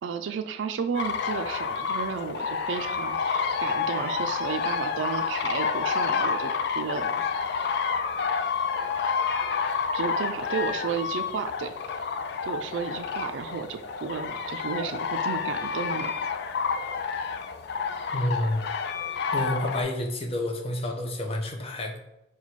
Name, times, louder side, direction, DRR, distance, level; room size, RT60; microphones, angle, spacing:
voice 1, 0.0-7.2 9.9-11.7 12.4-16.1, right 6 dB, 80° right, 8 dB, 0.3 m, -33 dB
sound 1, 0.9-19.8, left 5 dB, 65° left, 0.3 m, -29 dB
voice 2, 18.1-18.6 19.3-22.0, left 1 dB, 35° left, 2 dB, 0.6 m, -29 dB
4.0 x 2.2 x 4.5 m, 0.93 s
head